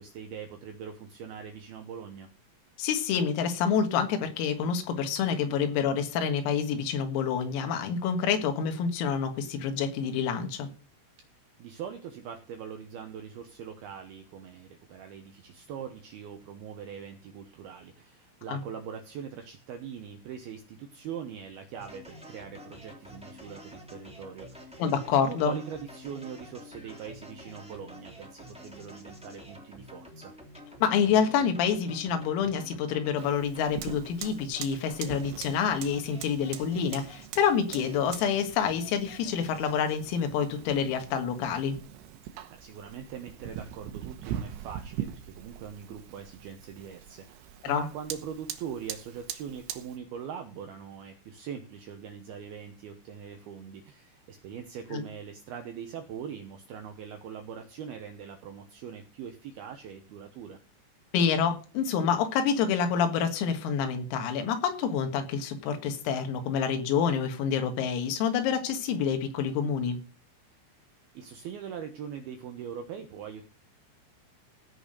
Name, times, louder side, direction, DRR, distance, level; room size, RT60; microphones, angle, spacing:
voice 1, 0.0-2.3 11.6-24.8 25.3-30.3 42.2-60.6 71.1-73.4, right 7 dB, 90° right, 2.1 m, -42 dB
voice 2, 2.8-10.7 18.5-18.6 24.8-25.6 30.8-41.8 47.6-47.9 54.9-55.0 61.1-70.0, left 7 dB, 85° left, 4.3 m, -27 dB
sound 1, 21.8-40.1, equal, 5° right, 0.5 m, -49 dB
Fire, 33.2-50.0, right 10 dB, 70° right, 2.9 m, -42 dB
16.5 x 5.8 x 6.7 m
omnidirectional pair, 6.0 m